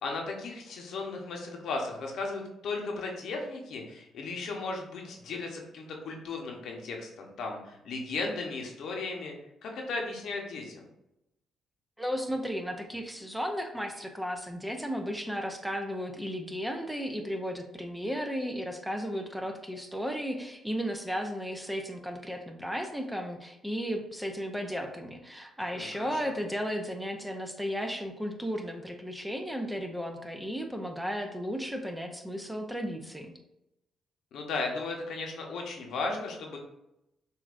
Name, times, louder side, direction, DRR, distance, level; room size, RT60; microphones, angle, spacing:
voice 1, 0.0-9.3 9.6-10.8 25.7-26.3 34.3-36.6, left 3 dB, 70° left, 1 dB, 0.9 m, -36 dB
voice 2, 12.0-33.3, equal, 5° right, 4 dB, 0.6 m, -34 dB
6.4 x 2.6 x 2.5 m, 0.88 s
cardioid pair, 90°, 0 cm